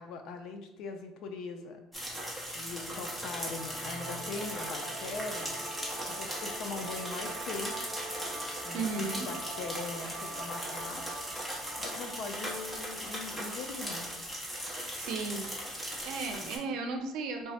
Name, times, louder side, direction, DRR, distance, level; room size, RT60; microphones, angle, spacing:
voice 1, 0.0-1.8 2.5-5.5 6.1-7.9 8.6-11.0 11.8-14.1 16.4-16.6, left 4 dB, 55° left, 5 dB, 0.5 m, -41 dB
sound 1, 1.9-16.6, equal, 5° left, 0.7 m, -38 dB
sound 2, 3.0-14.1, right 3 dB, 35° right, 1.0 m, -44 dB
voice 2, 8.7-9.3 15.0-15.4 16.0-17.5, right 4 dB, 70° right, 5 dB, 0.5 m, -35 dB
3.4 x 2.0 x 4.1 m, 0.89 s
cardioid pair, 175°, 0 cm